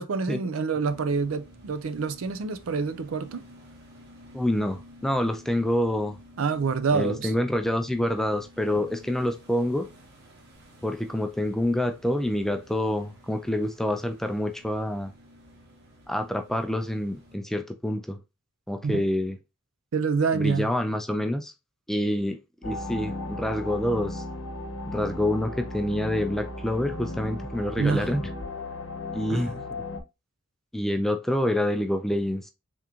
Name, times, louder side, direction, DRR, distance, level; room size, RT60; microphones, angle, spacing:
voice 1, 0.0-3.4 6.4-7.3 18.8-19.0 19.9-20.7 27.8-28.1 29.3-29.5, right 5 dB, 80° right, 0.5 m, -27 dB
sound 1, 0.8-17.4, equal, 50° right, 1.1 m, -51 dB
voice 2, 4.3-6.2 6.9-9.9 10.8-15.1 16.1-18.2 18.7-19.4 20.3-21.5 21.9-24.2 24.8-28.3 29.1-29.6 30.7-32.5, left 1 dB, ahead, 0.3 m, -27 dB
sound 2, 22.6-30.0, left 1 dB, 75° left, 0.8 m, -35 dB
3.6 x 3.5 x 2.9 m
head